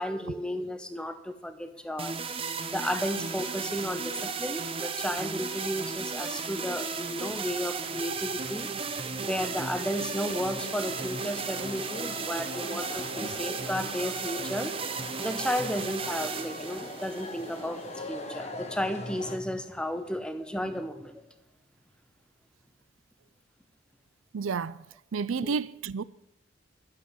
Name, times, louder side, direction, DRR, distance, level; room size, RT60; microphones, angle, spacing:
voice 1, 0.0-2.2 2.7-8.7 9.0-14.7 15.2-21.2 25.4-25.5, equal, 5° left, 0.8 m, -33 dB
sound 1, 2.0-18.0, right 5 dB, 25° right, 0.8 m, -35 dB
sound 2, 10.1-19.4, left 2 dB, 35° left, 1.3 m, -41 dB
voice 2, 24.3-24.8 25.1-26.0, right 5 dB, 80° right, 0.5 m, -30 dB
12.0 x 7.7 x 8.1 m
head